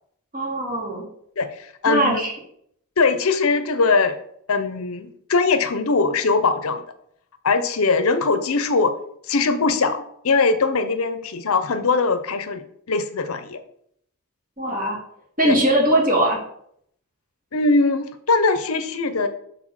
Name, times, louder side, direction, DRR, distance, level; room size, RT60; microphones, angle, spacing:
voice 1, 0.3-1.0 1.9-2.3 14.6-15.0 15.4-16.4, right 1 dB, 40° right, -4 dB, 2.5 m, -20 dB
voice 2, 1.4-2.2 3.0-4.2 4.5-6.8 7.4-8.9 9.3-13.6 15.4-15.6 17.5-19.3, left 4 dB, 65° left, 10 dB, 0.7 m, -21 dB
6.0 x 4.0 x 6.2 m, 0.69 s
head